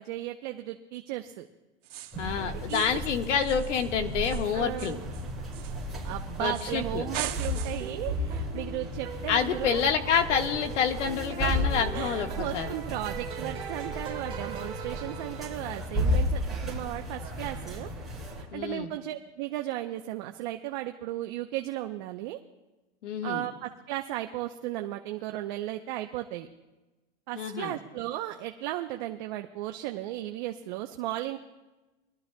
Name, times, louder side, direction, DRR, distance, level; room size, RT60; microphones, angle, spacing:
voice 1, 0.0-1.5 2.5-3.0 4.5-5.0 6.0-9.8 11.4-11.6 11.9-17.9 18.4-22.4 23.2-26.5 27.3-31.4, right 14 dB, 40° right, 5 dB, 0.7 m, -35 dB
sound 1, 1.8-2.3 2.7-3.1 3.4-6.1 6.5-6.8 7.1-8.0, right 12 dB, 85° right, 1.8 m, -41 dB
sound 2, 2.1-18.4, equal, ahead, 5.6 m, -34 dB
voice 2, 2.2-5.0 6.4-7.1 9.3-12.7 18.5-18.9 23.0-23.5 27.3-27.8, left 7 dB, 80° left, 5 dB, 1.5 m, -28 dB
sound 3, 7.0-15.9, right 6 dB, 15° right, 3.7 m, -42 dB
23.5 x 13.5 x 2.2 m, 1.1 s
supercardioid pair, 160°, 36 cm